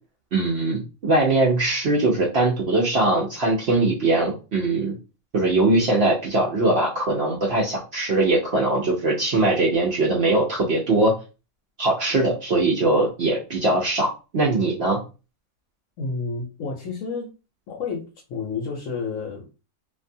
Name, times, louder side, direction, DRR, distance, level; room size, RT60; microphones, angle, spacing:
voice 1, 0.3-5.0 5.3-11.1 11.8-15.0, right 2 dB, 60° right, -3 dB, 0.7 m, -21 dB
voice 2, 16.0-17.3 17.7-19.5, left 4 dB, 70° left, -1 dB, 1.0 m, -30 dB
2.6 x 2.3 x 2.6 m, 0.31 s
omnidirectional pair, 1.5 m